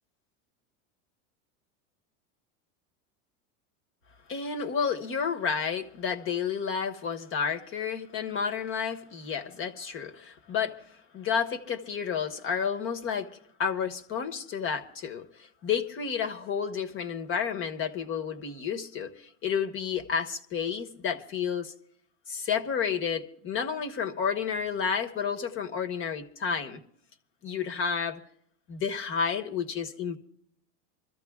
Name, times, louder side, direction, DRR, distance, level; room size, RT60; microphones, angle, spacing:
voice 1, 4.3-10.8 11.1-13.3 13.6-15.3 15.6-21.7 22.3-26.8 27.4-28.2 28.7-30.2, left 6 dB, 35° left, 1.4 m, -31 dB
26.0 x 14.0 x 2.4 m
supercardioid pair, 150°, 38 cm